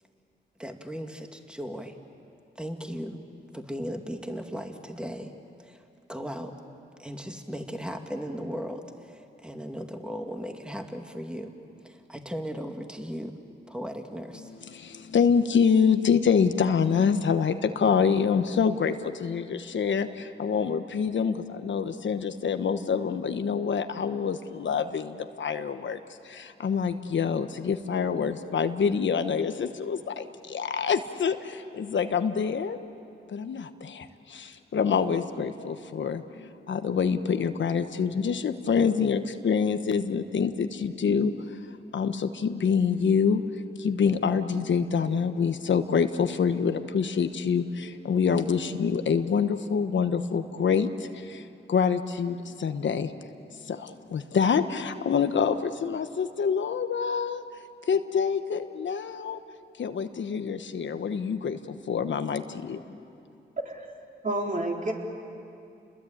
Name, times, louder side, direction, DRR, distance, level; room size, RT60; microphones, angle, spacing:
voice 1, 0.6-2.0 2.6-3.2 3.5-5.3 5.6-5.8 6.1-6.5 7.0-11.5 11.8-13.3 13.7-14.5, equal, 5° right, 4 dB, 2.3 m, -37 dB
voice 2, 14.7-26.0 26.2-32.8 33.3-41.3 41.9-43.4 43.8-51.4 51.7-53.1 53.7-57.4 57.9-59.4 59.8-63.0, left 6 dB, 70° left, 8 dB, 1.2 m, -26 dB
voice 3, 64.2-64.9, right 1 dB, 40° right, 0 dB, 4.1 m, -29 dB
30.0 x 21.5 x 8.8 m, 2.6 s
cardioid pair, 70°, 20 cm